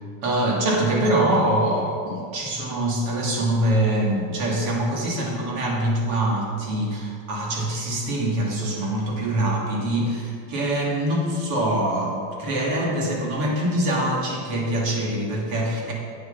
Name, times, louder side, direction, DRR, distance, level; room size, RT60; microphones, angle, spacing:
voice 1, 0.2-15.9, right 1 dB, 80° right, -2 dB, 2.7 m, -24 dB
8.7 x 7.2 x 5.7 m, 2.2 s
cardioid pair, 170°, 42 cm